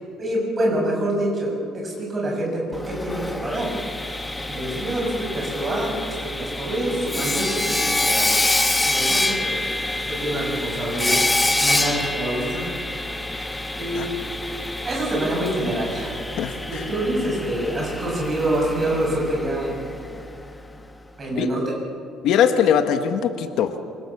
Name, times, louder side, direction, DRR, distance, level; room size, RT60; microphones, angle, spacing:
voice 1, 0.2-8.3 8.9-9.7 9.9-11.1 11.6-12.6 13.8-14.1 14.8-16.1 16.7-19.7 21.2-21.7, right 1 dB, 25° right, -2 dB, 6.8 m, -26 dB
Sawing, 2.7-20.5, left 1 dB, 10° left, 1.2 m, -26 dB
voice 2, 16.4-16.9 21.3-21.5 22.2-23.8, left 8 dB, 60° left, 8 dB, 1.4 m, -21 dB
26.5 x 25.5 x 7.2 m, 2.5 s
cardioid pair, 170°, 0 cm